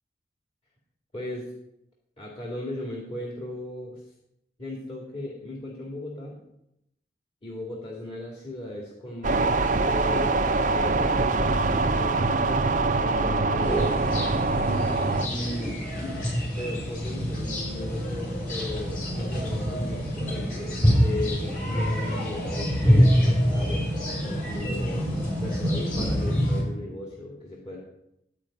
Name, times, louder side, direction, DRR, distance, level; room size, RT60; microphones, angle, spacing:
voice 1, 1.1-1.5 2.2-4.0 4.6-6.4 7.4-12.3 13.0-13.9 15.2-16.2 16.5-23.9 24.2-25.1 25.4-27.8, left 1 dB, 30° left, -3 dB, 2.2 m, -36 dB
sound 1, 9.2-15.3, right 3 dB, 45° right, 0.6 m, -24 dB
sound 2, 13.6-26.6, equal, 50° left, 4.9 m, -26 dB
12.5 x 5.0 x 8.5 m, 0.82 s
head